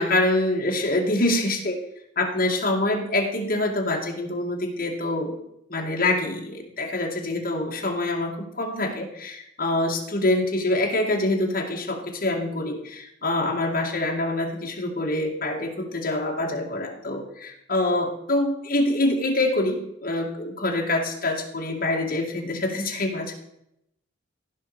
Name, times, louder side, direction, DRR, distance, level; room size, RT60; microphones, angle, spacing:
voice 1, 0.0-1.8 2.2-5.3 5.7-23.3, left 2 dB, 45° left, 0 dB, 2.2 m, -25 dB
16.0 x 5.8 x 5.0 m, 0.78 s
head